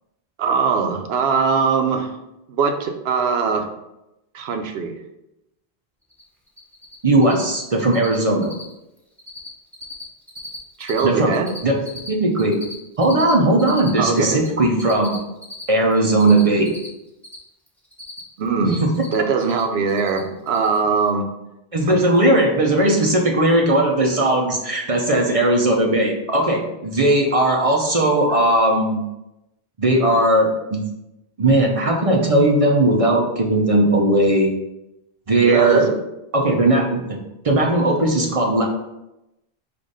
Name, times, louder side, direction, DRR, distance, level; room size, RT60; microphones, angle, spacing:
voice 1, 0.4-2.1 2.5-3.6 4.3-4.9 10.8-11.5 14.0-14.4 18.4-18.8 19.1-21.3 21.9-22.0 35.4-36.0, right 5 dB, 90° right, 5 dB, 0.9 m, -21 dB
Cricket, 6.1-6.2 6.5-7.0 7.2-7.5 7.8-8.2 8.4-8.7 9.0-9.5 9.7-11.0 11.3-14.5 14.8-17.4 17.7-18.5 18.7-19.6 19.9-20.2 20.5-20.8, left 1 dB, ahead, 0.7 m, -37 dB
voice 2, 7.0-8.5 11.0-11.3 11.6-11.7 12.1-12.6 13.0-15.2 15.7-16.7 18.8-18.9 21.7-29.1 29.8-30.8 31.4-34.5 35.3-35.9 36.3-37.2 37.4-38.6, right 1 dB, 40° right, 0 dB, 0.6 m, -18 dB
4.9 x 2.5 x 4.0 m, 0.91 s
omnidirectional pair, 1.0 m